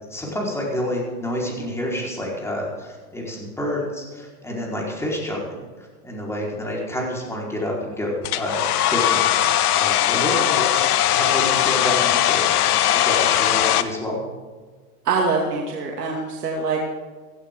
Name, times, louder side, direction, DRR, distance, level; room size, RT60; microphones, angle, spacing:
voice 1, 0.1-9.2 9.5-12.4 12.9-14.2, left 1 dB, 5° left, -3 dB, 4.5 m, -28 dB
Domestic sounds home sounds, 8.2-13.8, left 12 dB, 70° left, 1.1 m, -19 dB
voice 2, 15.0-16.8, right 4 dB, 80° right, -1 dB, 2.5 m, -24 dB
16.0 x 15.5 x 3.8 m, 1.5 s
hypercardioid pair, 115°, 46 cm